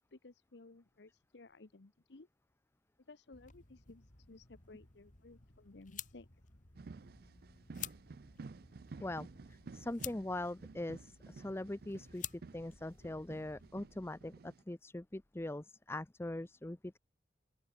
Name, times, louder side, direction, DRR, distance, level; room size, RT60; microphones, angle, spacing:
voice 1, 0.0-2.3 3.1-6.3, left 3 dB, 70° left, 0.9 m, -57 dB
sound 1, 3.3-13.7, left 10 dB, 45° left, 2.7 m, -52 dB
sound 2, 6.8-14.6, right 4 dB, 55° right, 0.5 m, -53 dB
voice 2, 9.0-17.0, left 1 dB, 15° left, 0.5 m, -42 dB
open air
head